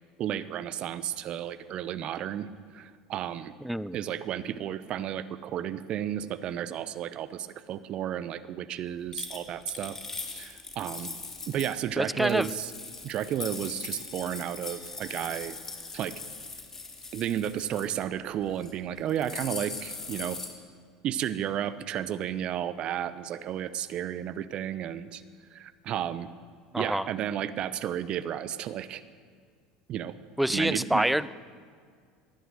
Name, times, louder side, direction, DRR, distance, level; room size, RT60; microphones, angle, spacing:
voice 1, 0.2-2.5 2.7-3.5 3.9-10.0 10.3-11.1 11.5-12.7 13.0-15.6 15.9-16.1 17.1-20.4 21.0-25.2 25.5-26.3 26.8-29.0 29.9-30.2 30.5-31.0, right 10 dB, 50° right, 15 dB, 0.8 m, -33 dB
voice 2, 3.6-4.0 12.0-12.5 26.7-27.1 30.4-31.3, right 1 dB, 5° right, 18 dB, 0.5 m, -26 dB
sound 1, 9.1-11.8 12.2-18.0 18.5-18.7 19.0-20.5, left 3 dB, 20° left, 2.7 m, -40 dB
18.0 x 11.0 x 6.4 m, 2.1 s
hypercardioid pair, 80°, 2 cm